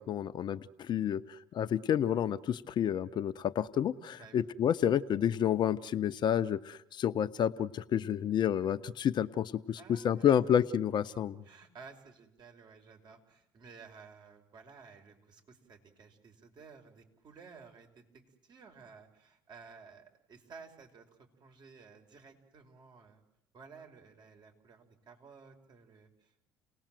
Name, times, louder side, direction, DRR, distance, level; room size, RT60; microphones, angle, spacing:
voice 1, 0.0-11.4, left 9 dB, 50° left, 11 dB, 1.0 m, -30 dB
voice 2, 4.1-4.5 9.8-10.3 11.4-23.2 23.5-26.5, right 5 dB, 50° right, 5 dB, 5.1 m, -55 dB
29.5 x 18.5 x 7.7 m, 0.86 s
supercardioid pair, 75°, 9 cm